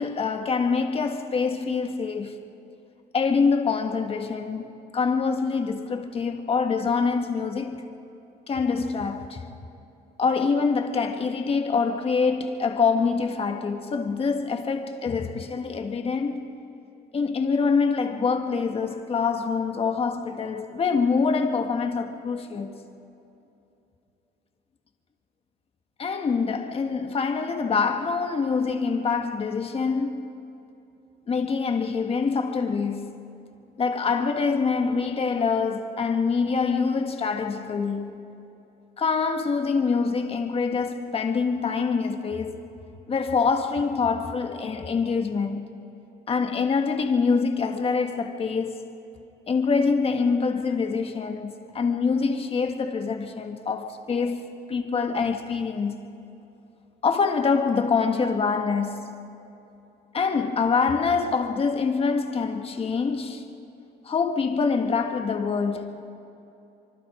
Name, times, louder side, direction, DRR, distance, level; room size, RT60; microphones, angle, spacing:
voice 1, 0.0-2.4 3.1-7.9 8.5-9.5 10.2-16.5 17.1-22.7 26.0-30.3 31.3-33.2 33.8-38.2 39.0-42.6 43.1-45.7 46.3-49.0 49.5-56.1 57.0-59.1 60.1-63.5 64.0-66.0, left 5 dB, 35° left, 1.6 m, -25 dB
25.5 x 24.0 x 5.1 m
cardioid pair, 110°, 17 cm